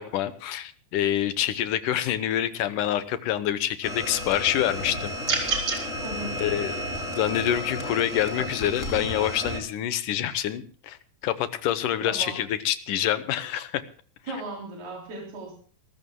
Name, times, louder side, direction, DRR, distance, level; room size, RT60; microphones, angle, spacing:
voice 1, 0.0-5.1 5.4-5.6 6.4-11.0 11.2-13.8, left 11 dB, 70° left, 12 dB, 2.2 m, -27 dB
sound 1, 3.8-9.6, left 1 dB, 25° left, 2.4 m, -33 dB
sound 2, 5.2-5.8, right 3 dB, 30° right, 3.8 m, -26 dB
voice 2, 6.0-6.4 12.0-12.4 14.3-15.5, right 2 dB, 85° right, -2 dB, 5.4 m, -36 dB
27.0 x 14.0 x 2.2 m, 0.42 s
omnidirectional pair, 4.3 m